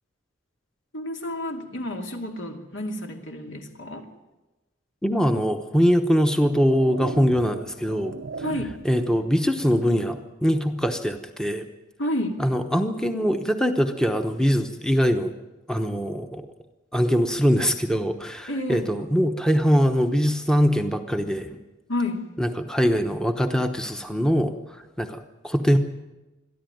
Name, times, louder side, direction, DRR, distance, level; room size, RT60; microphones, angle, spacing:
voice 1, 0.9-4.1 8.4-8.8 12.0-12.4 18.5-18.9 21.9-22.3, left 1 dB, 70° left, 3 dB, 2.5 m, -30 dB
voice 2, 5.0-8.1 8.8-11.6 12.4-15.3 15.7-16.5 16.9-21.6 22.4-25.8, equal, 5° left, 6 dB, 1.0 m, -22 dB
sound 1, 5.4-5.5 6.3-9.0, right 3 dB, 75° right, 0.7 m, -37 dB
22.5 x 13.5 x 9.3 m, 1.1 s
head